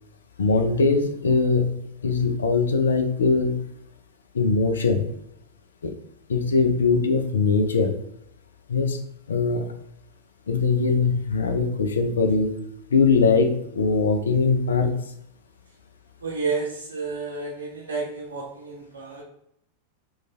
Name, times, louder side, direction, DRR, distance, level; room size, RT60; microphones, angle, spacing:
voice 1, 0.4-3.7 4.3-5.0 5.8-5.9 6.3-8.0 8.7-9.0 9.3-9.6 10.5-12.5 12.9-15.0, left 4 dB, 70° left, 6 dB, 0.5 m, -21 dB
voice 2, 16.2-19.2, right 4 dB, 70° right, -1 dB, 0.6 m, -31 dB
3.2 x 2.4 x 4.0 m, 0.76 s
figure-of-eight pair, 90°, 0 cm